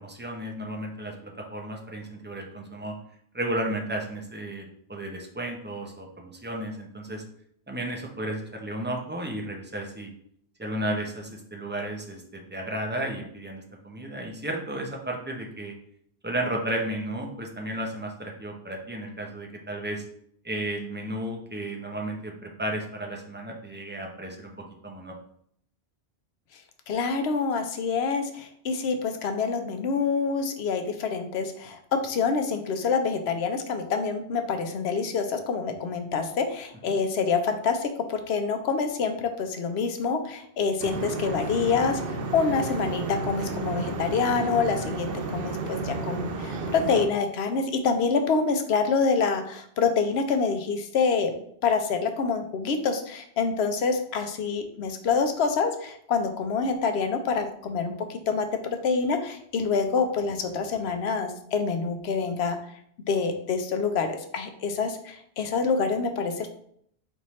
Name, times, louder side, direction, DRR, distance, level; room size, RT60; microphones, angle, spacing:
voice 1, 0.0-2.9 3.3-7.2 7.7-10.1 10.6-15.7 16.2-20.0 20.4-24.5 24.8-25.1 36.9-37.0, right 1 dB, 15° right, 1 dB, 0.5 m, -33 dB
voice 2, 26.9-51.3 51.6-62.6 63.1-66.5, left 5 dB, 80° left, 6 dB, 0.9 m, -26 dB
sound 1, 40.8-47.1, right 3 dB, 65° right, 0.8 m, -32 dB
4.3 x 3.5 x 3.1 m, 0.66 s
omnidirectional pair, 1.1 m